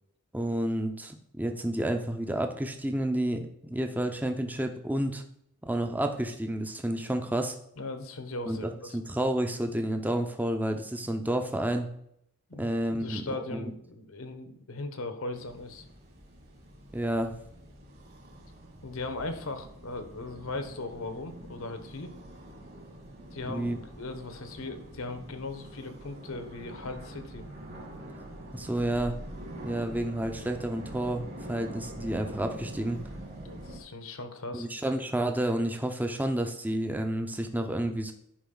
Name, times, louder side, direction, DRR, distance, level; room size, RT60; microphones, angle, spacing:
voice 1, 0.3-5.2 5.7-7.5 8.5-11.9 12.6-13.2 13.5-13.7 16.9-17.3 23.5-23.8 28.5-29.1 29.6-33.0 34.5-38.1, right 1 dB, 10° right, 5 dB, 0.6 m, -30 dB
voice 2, 7.8-9.0 12.5-15.9 18.8-22.1 23.3-27.5 33.4-34.7, left 2 dB, 75° left, 8 dB, 1.1 m, -38 dB
sound 1, 15.3-33.8, right 1 dB, 50° right, 2.0 m, -45 dB
10.5 x 5.2 x 3.9 m, 0.74 s
head